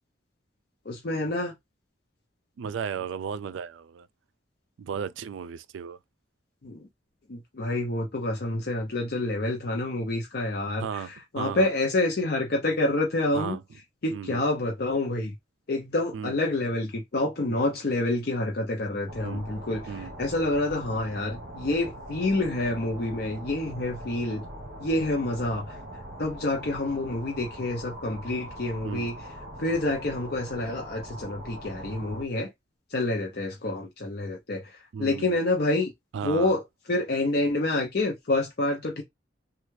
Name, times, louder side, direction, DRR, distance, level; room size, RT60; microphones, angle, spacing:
voice 1, 0.9-1.5 6.6-6.9 7.3-13.6 14.0-15.3 15.7-24.4 24.8-25.8 26.2-29.2 29.6-32.5 32.9-35.9 36.2-36.6 36.9-39.0, left 2 dB, 55° left, 0.6 m, -28 dB
voice 2, 2.6-4.1 4.8-6.0 10.8-11.7 13.3-13.6 14.1-14.5 16.1-16.3 17.5-17.7 19.2-19.4 19.9-20.1 28.8-29.1 34.9-35.4 36.1-36.6, right 7 dB, 80° right, 0.3 m, -35 dB
sound 1, 19.1-32.2, right 1 dB, 50° right, 0.9 m, -42 dB
3.2 x 2.3 x 3.1 m
head